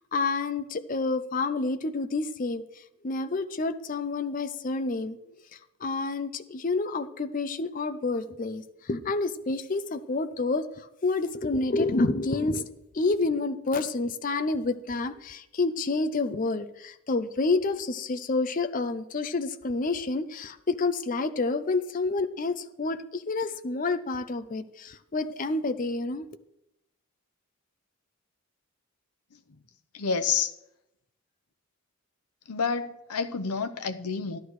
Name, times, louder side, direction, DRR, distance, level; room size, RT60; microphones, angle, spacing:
voice 1, 0.0-2.6 3.0-5.2 5.8-12.7 12.9-26.3, left 3 dB, 35° left, 0.5 m, -29 dB
voice 2, 29.9-30.5 32.5-34.4, left 5 dB, 90° left, 0.8 m, -29 dB
13.0 x 11.5 x 3.2 m
head